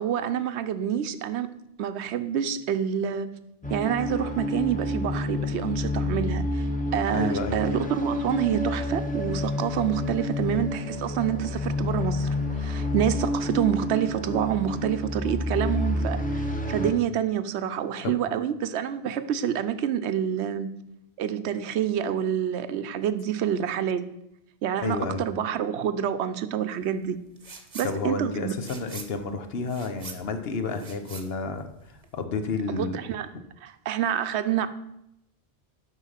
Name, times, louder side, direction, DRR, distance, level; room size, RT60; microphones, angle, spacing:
voice 1, 0.0-1.5 1.8-3.3 3.7-6.7 6.9-12.3 12.6-20.7 21.2-24.0 24.6-27.2 27.7-28.6 32.7-33.3 33.6-34.7, right 9 dB, 85° right, 12 dB, 0.9 m, -27 dB
sound 1, 3.6-16.9, left 2 dB, 10° left, 0.9 m, -29 dB
voice 2, 7.1-7.6 18.0-18.1 24.8-25.3 27.8-31.7 32.1-33.0, left 4 dB, 65° left, 8 dB, 1.1 m, -30 dB
sound 2, 27.4-27.9 28.2-32.2, right 4 dB, 35° right, 1.0 m, -44 dB
8.1 x 5.7 x 5.7 m, 0.82 s
omnidirectional pair, 1.1 m